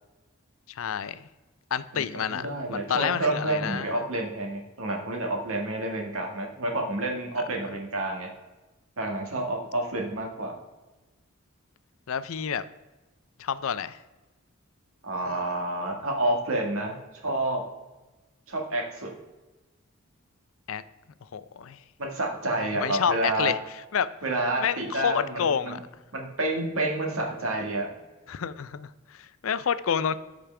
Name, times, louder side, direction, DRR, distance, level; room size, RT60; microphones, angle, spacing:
voice 1, 0.7-1.2 1.7-4.0 7.4-7.5 12.1-12.6 13.4-14.0 20.7-20.8 21.3-21.8 22.8-23.6 23.9-24.1 24.6-25.8 28.3-30.1, left 7 dB, 75° left, 14 dB, 0.5 m, -29 dB
voice 2, 1.9-8.3 9.0-10.6 15.0-17.0 17.2-17.6 18.5-19.1 22.0-23.5 24.2-25.8 26.1-28.0, right 2 dB, 80° right, 1 dB, 1.8 m, -29 dB
13.5 x 5.1 x 3.4 m, 1.1 s
head